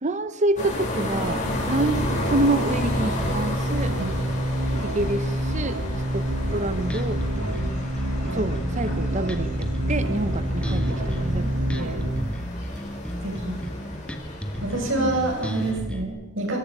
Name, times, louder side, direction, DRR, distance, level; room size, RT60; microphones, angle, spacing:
voice 1, 0.0-3.9 4.8-5.8 6.1-7.2 8.3-12.0 14.9-15.1, right 2 dB, 35° right, 13 dB, 0.7 m, -27 dB
sound 1, 0.6-15.7, left 1 dB, 35° left, 6.6 m, -33 dB
sound 2, 1.4-12.2, right 1 dB, 90° right, 3.1 m, -27 dB
voice 2, 3.8-4.2 11.3-11.7 13.2-13.6 14.6-16.6, right 2 dB, 60° right, 1 dB, 7.7 m, -28 dB
Bass guitar, 6.4-16.0, equal, 5° left, 2.1 m, -33 dB
26.0 x 24.0 x 5.5 m, 1.1 s
head